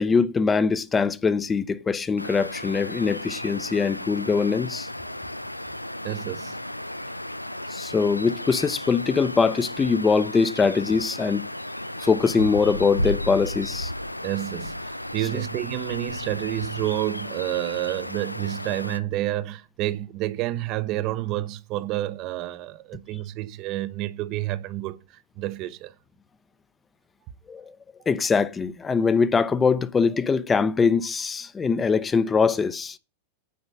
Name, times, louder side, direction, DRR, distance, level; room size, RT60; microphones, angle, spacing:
voice 1, 0.0-4.9 7.7-11.5 12.0-13.9 27.5-27.7 28.1-33.0, left 5 dB, 15° left, 0.7 m, -22 dB
sound 1, 2.2-19.0, left 1 dB, 85° left, 0.4 m, -34 dB
voice 2, 6.0-6.6 14.2-25.9, right 15 dB, 40° right, 0.8 m, -29 dB
9.5 x 5.2 x 7.8 m
figure-of-eight pair, 90°, 0 cm